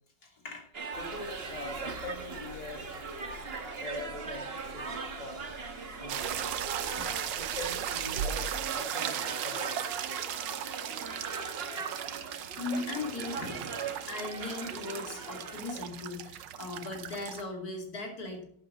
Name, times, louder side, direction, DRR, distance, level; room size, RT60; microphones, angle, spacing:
voice 1, 0.2-0.6 2.7-2.8 7.0-7.2 8.9-9.0 12.3-13.8 14.1-18.4, left 3 dB, 55° left, 1 dB, 3.4 m, -39 dB
sound 1, 0.7-16.0, right 4 dB, 40° right, 1.3 m, -40 dB
sound 2, 0.9-8.7, left 5 dB, 85° left, 2.2 m, -51 dB
voice 2, 0.9-3.0 3.8-4.9 5.2-5.5 6.0-6.4 7.4-9.8 10.1-10.2, left 1 dB, 25° left, 4 dB, 1.3 m, -43 dB
sound 3, 6.1-17.4, right 10 dB, 90° right, 1.5 m, -37 dB
11.0 x 10.5 x 4.0 m, 0.67 s
omnidirectional pair, 1.9 m